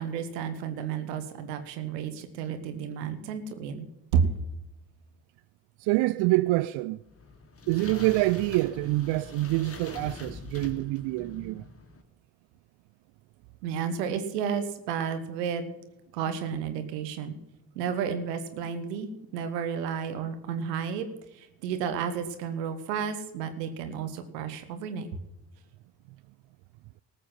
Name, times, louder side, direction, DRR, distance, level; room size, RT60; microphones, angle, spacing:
voice 1, 0.0-4.3 13.6-15.7 16.1-17.3 17.7-21.1 21.4-25.1, right 7 dB, 85° right, 1.2 m, -31 dB
voice 2, 5.8-7.0 7.7-11.6, right 19 dB, 65° right, 0.5 m, -26 dB
sound 1, 7.1-12.0, left 3 dB, 30° left, 2.0 m, -43 dB
18.5 x 6.7 x 5.8 m
hypercardioid pair, 40°, 48 cm